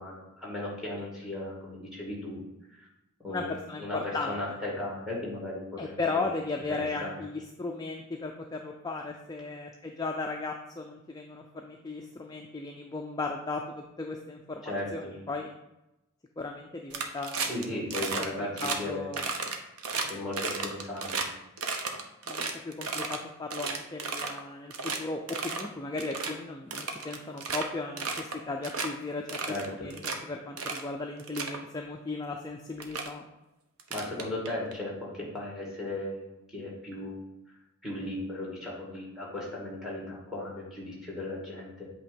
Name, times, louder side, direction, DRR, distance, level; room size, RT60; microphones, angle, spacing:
voice 1, 0.0-2.4 2.7-2.9 3.2-6.3 6.7-7.2 14.6-15.2 17.5-19.1 20.1-21.3 29.5-29.9 33.9-37.2 37.8-41.9, left 1 dB, ahead, -4 dB, 2.1 m, -36 dB
voice 2, 3.3-4.3 5.8-15.5 16.4-17.8 18.2-19.3 22.3-29.2 29.8-33.2, left 3 dB, 15° left, 2 dB, 0.3 m, -36 dB
sound 1, 16.9-17.6 17.9-18.3 18.6-18.8 19.1-21.3 21.6-23.2 23.5-24.4 24.7-25.0 25.3-25.7 26.0-26.3 26.7-27.7 28.0-28.4 28.6-28.9 29.3-30.2 30.6-30.9 31.2-31.6 32.4-32.5 32.8-33.1 33.8-34.7, right 4 dB, 90° right, 0.8 m, -33 dB
8.4 x 3.0 x 5.2 m, 0.92 s
head